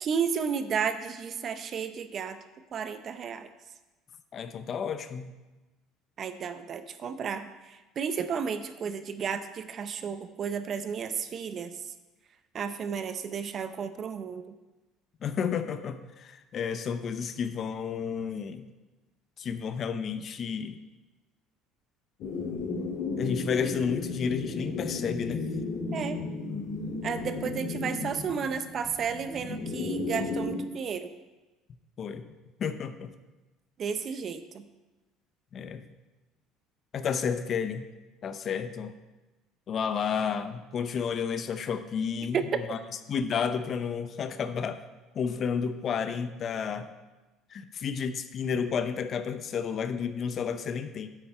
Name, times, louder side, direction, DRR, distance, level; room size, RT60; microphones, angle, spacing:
voice 1, 0.0-2.4 2.7-3.5 6.2-11.7 12.5-14.5 25.9-26.2 27.0-31.1 33.8-34.7 42.3-42.5, right 6 dB, 45° right, 10 dB, 0.7 m, -33 dB
voice 2, 4.3-5.3 15.2-18.7 19.4-20.8 23.2-25.5 32.0-32.3 32.6-33.1 35.5-35.9 36.9-37.9 38.2-38.9 39.7-42.8 43.1-44.8 45.1-46.9 47.5-51.1, left 6 dB, 45° left, 10 dB, 0.7 m, -31 dB
sound 1, 22.2-30.6, left 3 dB, 60° left, 2.4 m, -34 dB
9.6 x 7.9 x 4.4 m, 1.1 s
supercardioid pair, 95°, 0 cm